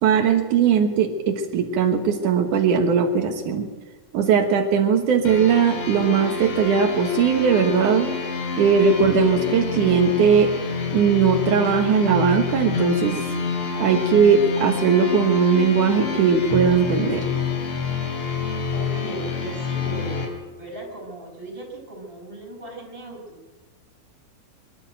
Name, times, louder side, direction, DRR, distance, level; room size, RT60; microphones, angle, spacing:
voice 1, 0.0-3.7 4.1-8.1 8.6-10.5 10.9-13.2 13.8-17.2, right 6 dB, 85° right, 4 dB, 1.7 m, -19 dB
sound 1, 5.3-20.3, left 5 dB, 70° left, 5.5 m, -28 dB
voice 2, 18.7-23.4, right 2 dB, 10° right, 1 dB, 5.2 m, -37 dB
23.0 x 12.5 x 9.2 m, 1.3 s
omnidirectional pair, 5.8 m